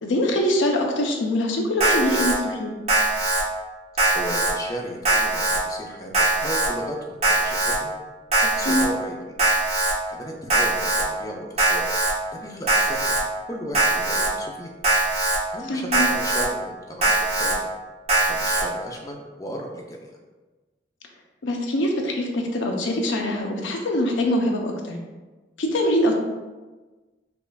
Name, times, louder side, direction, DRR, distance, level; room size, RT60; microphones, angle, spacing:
voice 1, 0.0-2.7 8.7-8.9 15.7-16.1 21.4-25.0 25.6-26.2, left 1 dB, 85° left, 2 dB, 0.6 m, -23 dB
Alarm, 1.8-2.3 2.9-3.4 4.0-4.5 5.0-5.6 6.1-6.7 7.2-7.8 8.3-8.8 9.4-9.9 10.5-11.0 11.6-12.1 12.7-13.2 13.7-14.3 14.8-15.4 15.9-16.4 17.0-17.5 18.1-18.6, right 2 dB, 35° right, 0.8 m, -21 dB
voice 2, 4.1-7.9 8.4-9.4 10.1-11.9 12.3-13.2 13.5-14.7 15.5-17.1 17.4-17.7 18.2-20.2, equal, 20° left, 1 dB, 0.4 m, -35 dB
5.2 x 2.4 x 2.3 m, 1.2 s
head